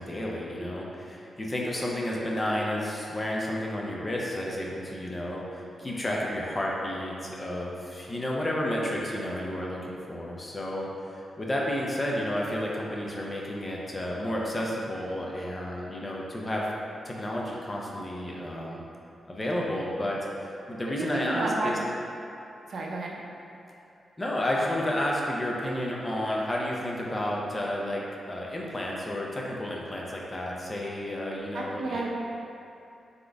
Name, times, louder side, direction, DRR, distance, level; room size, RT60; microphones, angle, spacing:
voice 1, 0.0-16.7 17.0-18.8 19.3-21.8 24.2-32.1, left 1 dB, 20° left, -3 dB, 0.5 m, -31 dB
voice 2, 20.9-21.8 22.7-23.2 31.5-32.1, right 2 dB, 65° right, -2 dB, 0.5 m, -31 dB
3.8 x 3.7 x 3.4 m, 2.7 s
wide cardioid pair, 150°, 0 cm